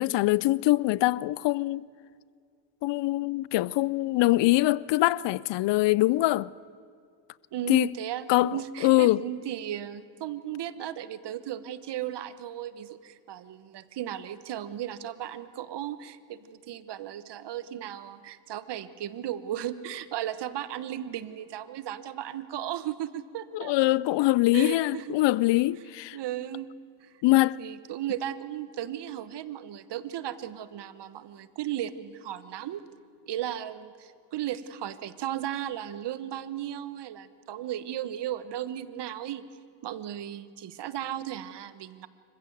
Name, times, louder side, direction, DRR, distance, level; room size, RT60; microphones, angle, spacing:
voice 1, 0.0-1.8 2.8-6.5 7.7-7.9 8.3-9.2 23.5-26.2 27.2-27.6, left 18 dB, 65° left, 0.6 m, -23 dB
voice 2, 7.5-23.7 24.5-25.2 26.1-26.7 27.0-27.1 27.6-32.9 33.3-39.4 39.8-42.1, right 11 dB, 60° right, 1.2 m, -35 dB
26.0 x 15.5 x 8.0 m
cardioid pair, 85°, 46 cm